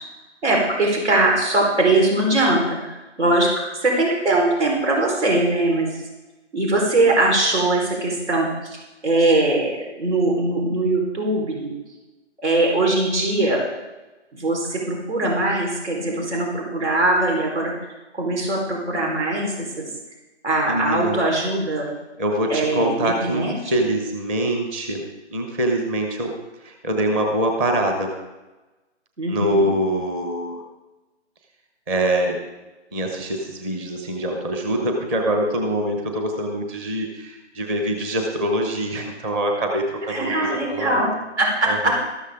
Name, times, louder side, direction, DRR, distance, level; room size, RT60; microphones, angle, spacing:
voice 1, 0.4-3.5 3.8-6.0 6.5-11.7 12.4-13.6 14.3-17.7 18.1-19.8 20.4-21.9 22.5-23.8 29.2-29.7 40.1-41.1 41.4-41.9, right 2 dB, 70° right, -1 dB, 4.5 m, -21 dB
voice 2, 20.7-21.2 22.2-25.0 25.3-26.3 26.6-28.1 29.3-30.6 31.9-32.4 32.9-41.0 41.7-41.9, right 1 dB, 10° right, 3 dB, 0.8 m, -24 dB
13.0 x 13.0 x 3.7 m, 1.1 s
hypercardioid pair, 155°, 35 cm